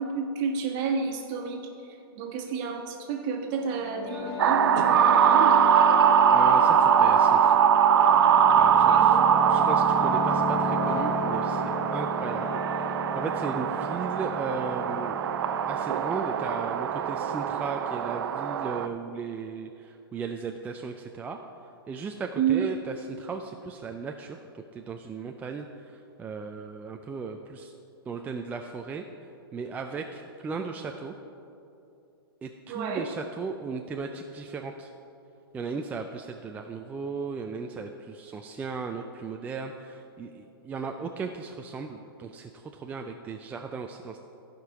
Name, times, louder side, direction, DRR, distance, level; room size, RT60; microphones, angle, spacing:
voice 1, 0.0-1.6 2.1-5.6 8.8-9.2 22.4-22.7 32.7-33.1, right 6 dB, 40° right, 1 dB, 1.4 m, -30 dB
sound 1, 3.5-18.9, left 3 dB, 25° left, 0.8 m, -35 dB
sound 2, 4.4-18.9, right 8 dB, 70° right, 0.5 m, -22 dB
voice 2, 6.3-7.7 8.6-9.2 9.5-15.3 15.7-21.4 21.9-27.7 28.1-29.0 29.5-31.1 32.4-34.9 35.5-44.2, right 5 dB, 10° right, 3 dB, 0.3 m, -36 dB
15.0 x 5.2 x 4.7 m, 2.8 s
hypercardioid pair, 130°, 13 cm